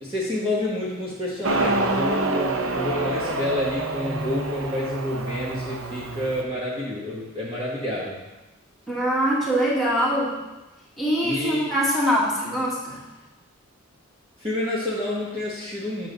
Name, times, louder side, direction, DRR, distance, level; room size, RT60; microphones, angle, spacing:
voice 1, 0.0-8.2 11.2-11.7 14.4-16.1, left 1 dB, 25° right, -7 dB, 1.3 m, -28 dB
Motorcycle, 1.4-6.4, right 2 dB, 90° right, 0.8 m, -27 dB
voice 2, 8.9-10.3 11.0-13.0, equal, ahead, -8 dB, 2.0 m, -23 dB
7.3 x 6.8 x 4.0 m, 1.0 s
head